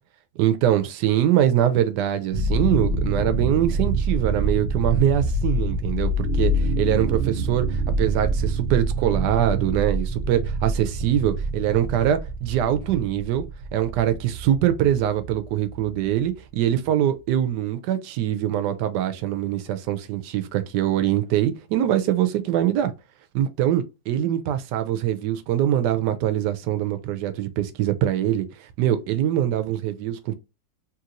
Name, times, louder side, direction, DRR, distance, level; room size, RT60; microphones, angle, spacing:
voice 1, 0.4-13.5 13.7-22.9 23.3-30.4, right 11 dB, 85° right, 1.2 m, -23 dB
sound 1, 2.3-16.3, right 1 dB, 60° right, 1.0 m, -26 dB
3.0 x 2.9 x 2.5 m
omnidirectional pair, 1.8 m